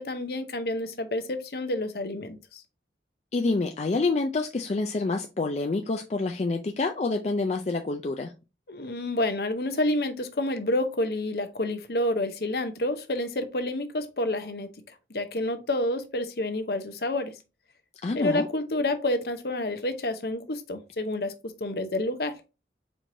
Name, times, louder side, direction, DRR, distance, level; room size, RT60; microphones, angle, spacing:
voice 1, 0.0-2.6 8.7-14.7 15.1-17.3 18.1-21.3 21.6-22.3, left 1 dB, 60° left, 0.7 m, -29 dB
voice 2, 3.3-8.3 18.0-18.5, left 3 dB, 35° left, 0.4 m, -27 dB
4.5 x 4.4 x 2.6 m
head